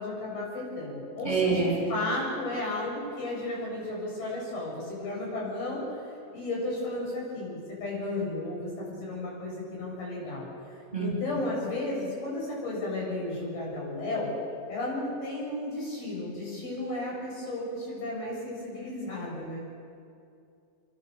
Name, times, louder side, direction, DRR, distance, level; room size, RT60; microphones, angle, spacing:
voice 1, 0.0-6.0 6.3-14.3 14.7-19.6, left 2 dB, 55° left, -4 dB, 9.5 m, -34 dB
voice 2, 1.2-1.8 10.9-11.1, right 4 dB, 5° left, -4 dB, 7.8 m, -26 dB
26.0 x 24.0 x 7.0 m, 2.5 s
omnidirectional pair, 5.3 m